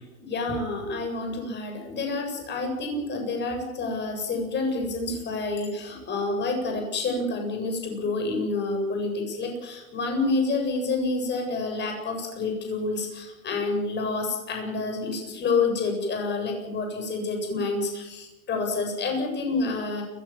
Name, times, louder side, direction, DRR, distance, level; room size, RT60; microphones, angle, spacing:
voice 1, 0.2-20.0, left 3 dB, 25° left, 3 dB, 8.0 m, -28 dB
29.5 x 15.0 x 7.6 m, 1.0 s
hypercardioid pair, 135°, 42 cm